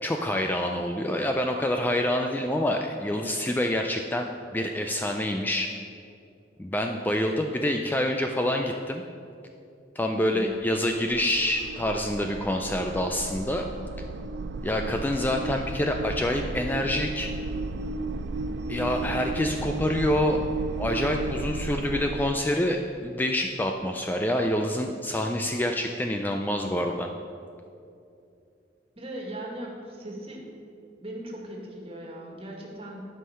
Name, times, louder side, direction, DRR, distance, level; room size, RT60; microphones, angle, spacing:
voice 1, 0.0-5.7 6.6-9.0 10.0-13.7 14.6-17.3 18.7-20.4 20.8-27.1, left 1 dB, 10° left, 3 dB, 0.4 m, -27 dB
sound 1, 10.4-22.3, right 3 dB, 70° right, 0.4 m, -34 dB
voice 2, 28.9-30.5 31.0-33.0, right 1 dB, 35° right, -1 dB, 1.7 m, -39 dB
11.5 x 5.5 x 5.7 m, 2.5 s
head